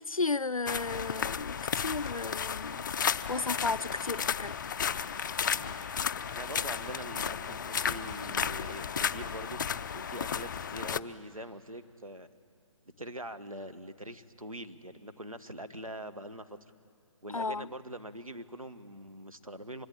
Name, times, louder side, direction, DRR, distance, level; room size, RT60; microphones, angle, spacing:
voice 1, 0.0-2.9 3.3-4.5 17.3-17.7, left 3 dB, 85° left, 0.5 m, -34 dB
sound 1, 0.7-11.0, left 7 dB, 35° left, 0.6 m, -33 dB
voice 2, 6.3-9.6 9.9-12.3 13.0-16.6 17.2-19.9, right 1 dB, 90° right, 1.7 m, -43 dB
25.0 x 23.0 x 8.9 m
figure-of-eight pair, 140°, 17 cm